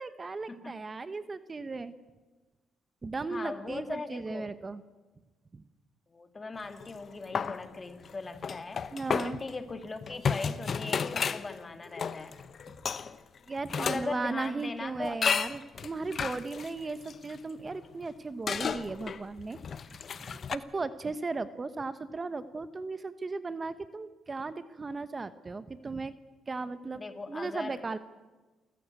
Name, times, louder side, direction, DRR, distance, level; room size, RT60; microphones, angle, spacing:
voice 1, 0.0-1.9 3.0-4.8 5.5-5.6 8.9-9.4 13.5-19.6 19.9-26.2 26.5-27.0 27.3-28.0, right 3 dB, 30° right, 12 dB, 1.0 m, -36 dB
voice 2, 3.3-4.6 6.1-8.9 9.2-12.4 13.8-15.2 26.9-27.8, left 3 dB, 30° left, 8 dB, 2.2 m, -39 dB
sound 1, 6.6-7.0 7.3-14.1 14.4-14.5 15.2-18.1 18.5-20.6, left 6 dB, 50° left, 1.0 m, -33 dB
29.0 x 15.0 x 8.3 m, 1.2 s
cardioid pair, 90°, 0 cm